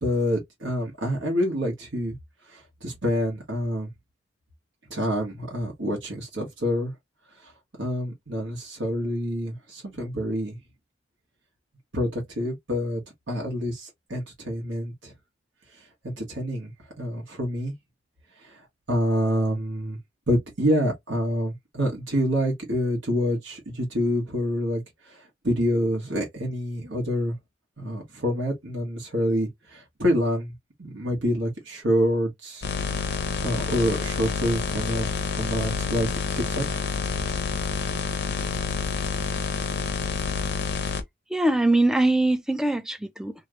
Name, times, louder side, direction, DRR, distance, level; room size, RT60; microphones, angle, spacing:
voice 1, 0.0-2.1 2.5-3.9 4.9-6.9 7.8-10.6 11.9-13.0 13.3-15.1 16.0-16.7 17.0-17.7 18.4-18.6 18.9-20.0 20.3-27.4 27.8-30.5 30.8-32.6 32.9-36.1 36.3-36.8, equal, 75° right, 1.3 m, -27 dB
sound 1, 32.6-41.0, left 5 dB, 60° left, 0.6 m, -28 dB
voice 2, 41.3-43.3, right 2 dB, 5° right, 0.4 m, -22 dB
3.0 x 2.4 x 3.0 m
head